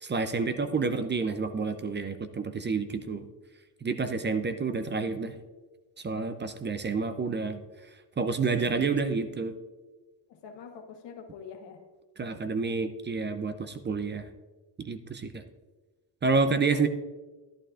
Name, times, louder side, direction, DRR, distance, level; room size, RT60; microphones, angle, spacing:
voice 1, 0.0-3.3 3.8-5.4 6.0-7.6 8.2-9.5 12.2-14.3 14.8-15.4 16.2-16.9, right 4 dB, 25° right, 10 dB, 0.5 m, -29 dB
voice 2, 10.3-11.8 16.7-16.8, left 6 dB, 80° left, 4 dB, 1.3 m, -46 dB
11.5 x 11.5 x 2.5 m, 1.3 s
cardioid pair, 110°, 42 cm